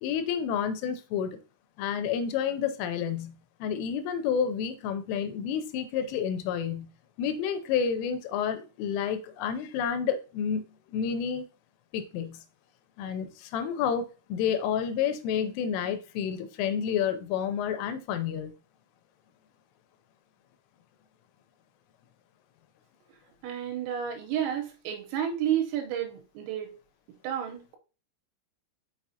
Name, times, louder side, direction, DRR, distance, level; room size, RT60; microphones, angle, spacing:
voice 1, 0.0-1.4 1.8-3.4 3.6-6.9 7.2-10.6 10.9-11.4 11.9-12.4 13.0-18.5, left 7 dB, 85° left, 9 dB, 3.2 m, -30 dB
voice 2, 23.4-26.7 27.1-27.8, right 10 dB, 85° right, 4 dB, 3.7 m, -31 dB
6.1 x 6.0 x 2.8 m, 0.33 s
omnidirectional pair, 5.8 m